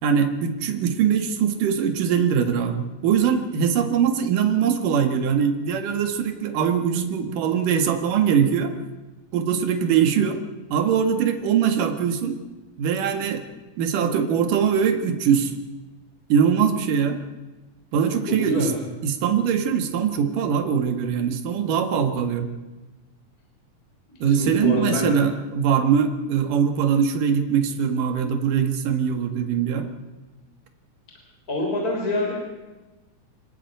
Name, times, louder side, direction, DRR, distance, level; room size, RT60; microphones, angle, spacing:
voice 1, 0.0-8.7 9.3-10.4 10.7-12.4 12.8-13.4 13.8-15.5 16.3-17.2 17.9-18.7 19.0-22.5 24.2-29.9, right 7 dB, 80° right, 6 dB, 3.3 m, -22 dB
voice 2, 18.3-18.8 24.1-25.2 31.5-32.3, left 1 dB, 25° left, 0 dB, 3.8 m, -25 dB
26.5 x 11.5 x 9.3 m, 1.2 s
omnidirectional pair, 3.7 m